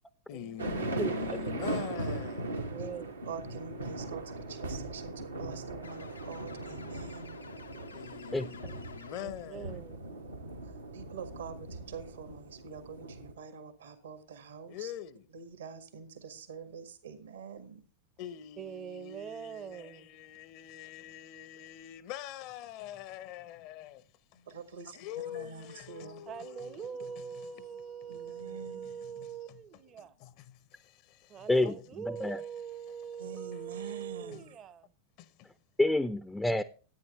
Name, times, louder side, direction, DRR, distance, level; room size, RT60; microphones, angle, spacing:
voice 1, 0.3-2.6 7.9-9.8 14.7-15.3 18.2-24.0 24.3-24.4 24.9-29.6 30.0-31.8 33.2-33.4 33.8-33.9 34.2-34.5 35.2-35.5, left 12 dB, 45° left, 0.8 m, -45 dB
sound 1, 0.6-13.3, right 2 dB, 80° right, 1.8 m, -39 dB
voice 2, 1.0-1.4 8.3-8.7 31.5-31.7 32.1-32.4 35.8-36.6, left 2 dB, 5° left, 0.6 m, -28 dB
voice 3, 2.7-3.1 9.2-10.0 18.6-20.1 26.3-30.1 31.3-34.9, right 8 dB, 30° right, 0.9 m, -43 dB
voice 4, 3.3-7.4 10.6-14.9 15.3-17.8 24.5-25.0 25.2-26.3 28.1-29.0 33.2-34.5, right 6 dB, 65° right, 1.7 m, -45 dB
sound 2, 5.8-9.6, left 4 dB, 80° left, 0.9 m, -51 dB
13.5 x 9.3 x 3.2 m
figure-of-eight pair, 90°, 0 cm